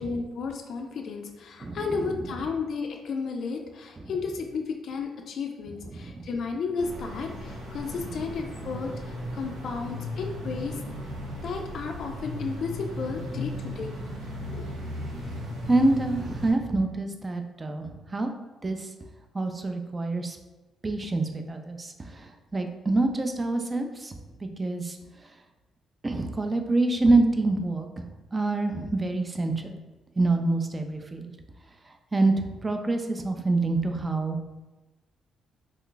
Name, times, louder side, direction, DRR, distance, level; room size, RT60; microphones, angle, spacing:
voice 1, 0.0-10.8 11.4-13.9 14.5-14.7, left 4 dB, 60° left, 3 dB, 0.3 m, -33 dB
voice 2, 1.6-2.0 5.9-6.2 15.7-18.3 18.6-18.9 19.3-20.4 20.8-24.2 24.6-25.0 26.0-28.0 28.3-29.8 30.2-31.3 32.1-34.4, right 2 dB, 25° right, 5 dB, 0.4 m, -26 dB
sound 1, 6.8-16.5, left 1 dB, 85° right, 0.8 m, -36 dB
3.1 x 2.3 x 3.8 m, 1.1 s
cardioid pair, 90°, 0 cm